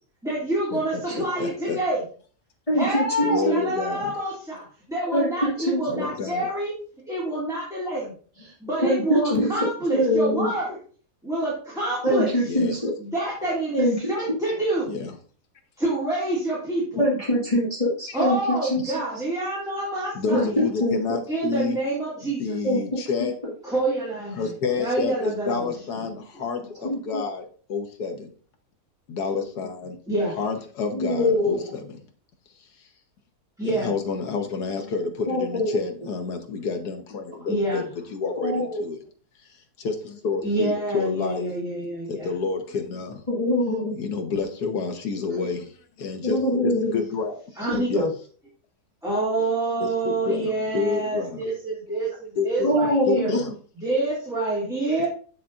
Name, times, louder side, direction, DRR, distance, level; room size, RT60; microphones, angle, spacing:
voice 1, 0.2-2.0 2.7-6.7 7.1-8.1 8.6-10.8 11.2-12.3 13.0-14.9 15.8-17.0 18.1-20.6 21.3-22.6 23.6-26.2 26.8-26.9 30.1-30.3 33.6-33.9 37.5-37.8 40.4-42.3 47.6-47.9 49.0-53.3 53.8-55.1, right 2 dB, ahead, -7 dB, 2.1 m, -27 dB
voice 2, 1.2-1.8 3.2-4.1 5.9-6.5 12.4-12.8 14.9-15.1 18.1-18.2 20.2-21.8 22.4-23.4 24.4-27.4 27.7-28.3 29.1-30.0 30.4-32.0 33.6-37.8 38.1-39.0 39.8-41.5 42.1-43.2 44.0-45.7 46.0-47.4 47.9-48.1 49.8-51.6 52.4-52.8 53.1-53.5, left 5 dB, 80° left, 4 dB, 1.6 m, -29 dB
voice 3, 2.7-3.6 5.1-5.8 8.8-9.5 9.9-10.5 12.0-12.9 13.8-14.0 17.0-18.9 20.3-21.0 22.6-22.8 23.2-23.3 26.8-27.2 30.9-31.6 35.3-35.7 38.4-38.8 43.3-43.9 46.2-47.0 47.7-48.1 52.6-53.4, equal, 20° left, -6 dB, 2.1 m, -23 dB
7.2 x 6.7 x 2.5 m, 0.42 s
omnidirectional pair, 1.7 m